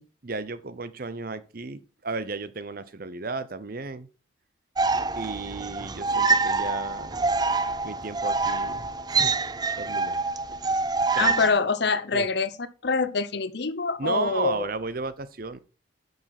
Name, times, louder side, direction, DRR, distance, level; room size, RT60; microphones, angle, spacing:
voice 1, 0.2-4.1 5.2-7.3 7.8-9.4 9.8-10.2 11.1-11.5 12.1-12.3 14.0-15.6, right 3 dB, 45° right, 0.7 m, -34 dB
sound 1, 4.8-11.5, right 4 dB, 20° right, 0.4 m, -26 dB
voice 2, 11.1-12.5 12.8-14.6, left 4 dB, 55° left, 0.8 m, -25 dB
8.6 x 6.6 x 5.9 m
head